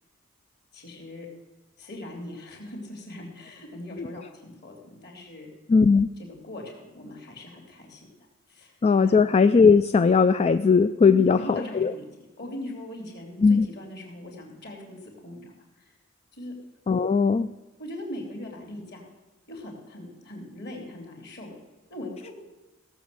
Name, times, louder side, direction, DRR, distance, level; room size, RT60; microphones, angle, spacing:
voice 1, 0.7-1.3 1.8-5.5 6.2-8.1 8.5-8.7 9.0-9.2 11.1-12.1 12.4-16.0 16.3-16.5 17.8-19.1 19.5-21.5 21.9-22.3, left 1 dB, 55° left, 1 dB, 3.5 m, -40 dB
voice 2, 5.7-6.1 8.8-11.9 13.4-13.7 16.9-17.5, left 5 dB, 30° left, 11 dB, 0.3 m, -19 dB
16.5 x 7.2 x 7.7 m, 1.1 s
head